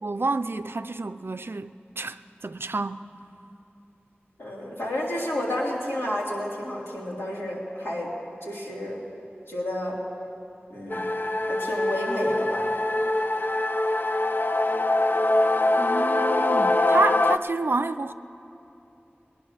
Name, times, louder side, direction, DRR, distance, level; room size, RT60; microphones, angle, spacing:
voice 1, 0.0-3.1 15.8-18.1, right 3 dB, 65° right, 0.4 m, -29 dB
voice 2, 4.4-8.1 8.4-9.0 9.5-10.0 10.7-11.1 11.5-12.7, left 1 dB, 80° left, 3.2 m, -30 dB
sound 1, 10.9-17.4, left 2 dB, 55° left, 0.5 m, -23 dB
19.5 x 10.0 x 6.4 m
wide cardioid pair, 40°, 4 cm